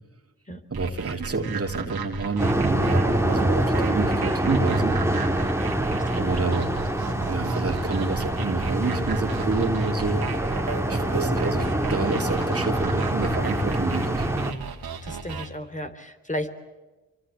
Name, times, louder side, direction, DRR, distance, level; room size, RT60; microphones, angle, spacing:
voice 1, 0.7-5.0 6.2-6.7 7.3-10.4 10.9-14.3, right 3 dB, 40° right, 4 dB, 3.1 m, -28 dB
sound 1, 0.7-15.5, right 6 dB, 85° right, 3.2 m, -35 dB
sound 2, 2.4-14.5, right 1 dB, 5° right, 2.9 m, -25 dB
voice 2, 6.1-6.6 15.0-16.5, left 1 dB, 20° left, 7 dB, 3.4 m, -34 dB
26.5 x 24.5 x 8.4 m, 1.2 s
cardioid pair, 55°, 36 cm